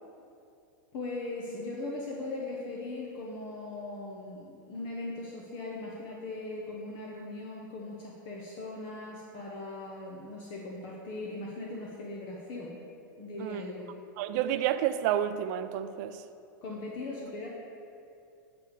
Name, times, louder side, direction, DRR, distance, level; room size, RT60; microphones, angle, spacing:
voice 1, 0.9-12.7 13.2-13.9 16.6-17.5, left 2 dB, 50° left, -3 dB, 1.1 m, -39 dB
voice 2, 14.2-16.2, right 11 dB, 55° right, 11 dB, 0.4 m, -30 dB
9.1 x 3.5 x 6.6 m, 2.6 s
hypercardioid pair, 120°, 11 cm